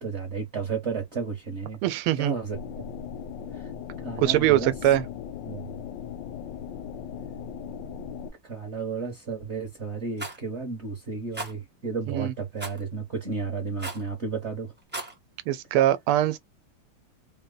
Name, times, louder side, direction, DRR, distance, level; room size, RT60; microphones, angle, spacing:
voice 1, 0.0-1.8 2.2-2.6 3.5-3.7 4.0-4.7 5.4-5.7 8.4-14.7, right 4 dB, 40° right, 1.0 m, -32 dB
voice 2, 1.8-2.3 4.2-5.0 12.1-12.3 15.5-16.4, right 13 dB, 90° right, 1.5 m, -22 dB
sound 1, 2.5-8.3, left 8 dB, 75° left, 1.1 m, -38 dB
Rattle, 10.2-10.4 11.3-11.5 12.6-12.8 13.8-14.1 14.8-15.1, right 2 dB, 15° right, 0.4 m, -35 dB
4.1 x 2.2 x 3.8 m
omnidirectional pair, 2.4 m